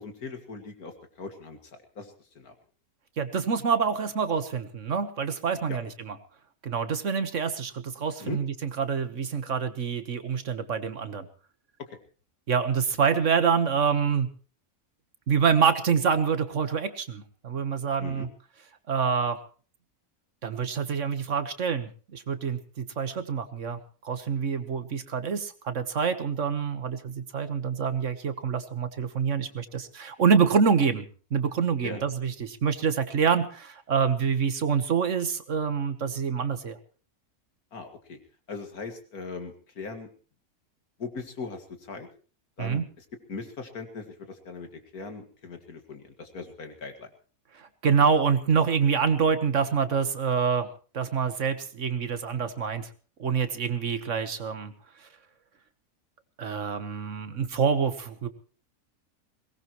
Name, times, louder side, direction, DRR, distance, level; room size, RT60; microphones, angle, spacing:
voice 1, 0.0-2.5 5.7-5.8 8.2-8.4 11.8-12.0 18.0-18.3 31.8-32.0 37.7-38.2 38.5-40.1 41.0-42.1 42.6-47.1, left 4 dB, 75° left, 6 dB, 2.4 m, -40 dB
voice 2, 3.2-5.9 6.6-11.3 12.5-14.3 15.3-18.3 18.9-19.4 20.4-23.8 24.0-36.8 42.6-42.8 47.6-50.7 50.9-52.9 53.2-54.7 55.0-55.1 56.4-58.3, right 6 dB, 55° right, 10 dB, 1.5 m, -26 dB
22.0 x 18.5 x 3.0 m, 0.38 s
omnidirectional pair, 1.6 m